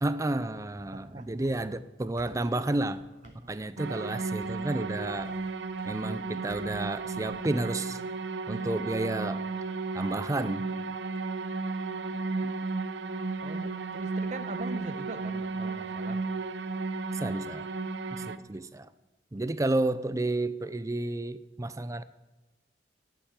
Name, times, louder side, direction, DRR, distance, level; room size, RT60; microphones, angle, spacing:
voice 1, 0.0-3.0 3.5-5.4 5.8-8.0 8.5-9.4 9.9-10.7 17.1-17.7 18.1-18.9 19.3-22.0, right 2 dB, 20° right, 14 dB, 0.4 m, -31 dB
voice 2, 0.9-1.3 3.4-3.6 13.4-16.2 18.2-18.5 19.3-19.5, right 2 dB, 40° right, 10 dB, 0.9 m, -42 dB
sound 1, 1.9-7.5, equal, 45° left, 3.6 m, -57 dB
sound 2, 3.8-18.4, right 3 dB, 75° right, 0.7 m, -34 dB
14.0 x 7.2 x 7.5 m, 1.1 s
head